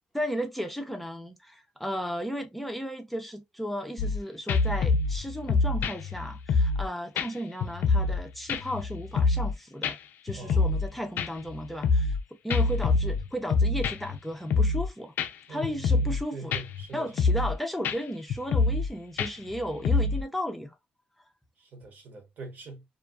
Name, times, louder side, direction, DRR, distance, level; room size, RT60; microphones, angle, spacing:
voice 1, 0.1-10.0 10.2-12.2 12.4-15.1 15.5-16.5 16.9-20.7, equal, 5° left, 0.5 m, -34 dB
sound 1, 4.0-4.2 4.5-6.9 7.2-7.3 7.6-8.2 8.5-9.5 9.8-9.9 10.3-10.9 11.2-12.2 12.5-14.2 14.5-14.9 15.2-15.3 15.6-16.2 16.5-16.8 17.2-17.6 17.8-18.0 18.3-18.9 19.2-20.2, left 3 dB, 75° left, 0.3 m, -25 dB
voice 2, 10.3-10.8 12.5-12.7 15.5-17.1 21.6-22.8, right 3 dB, 60° right, 1.1 m, -43 dB
2.4 x 2.3 x 2.3 m
cardioid pair, 95°, 3 cm